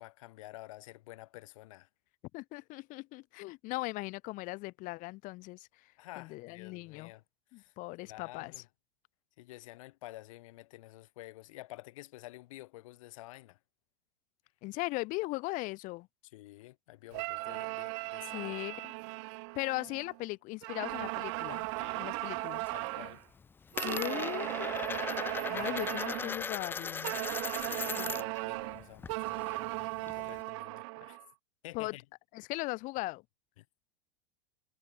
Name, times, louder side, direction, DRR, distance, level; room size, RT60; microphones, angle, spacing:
voice 1, 0.0-1.9 6.0-7.2 7.6-7.7 8.0-8.7 9.4-13.6 16.3-18.5 21.8-22.1 22.7-23.2 25.4-25.8 27.5-31.2 31.6-32.0 33.6-33.7, left 18 dB, 65° left, 2.7 m, -50 dB
voice 2, 2.3-5.7 6.2-7.1 7.5-8.5 14.6-16.1 18.3-18.9 19.5-21.7 22.0-22.6 23.7-24.7 25.5-27.2 27.9-28.1 31.7-31.9 32.3-33.2, left 22 dB, 45° left, 1.1 m, -38 dB
sound 1, 17.1-20.2 20.6-23.2 23.7-26.4 27.0-31.3, right 28 dB, 55° right, 0.6 m, -37 dB
Coin (dropping), 20.9-22.1 22.4-22.9 23.1-28.4 28.7-30.4, left 5 dB, 10° left, 0.3 m, -39 dB
hypercardioid pair, 95°, 18 cm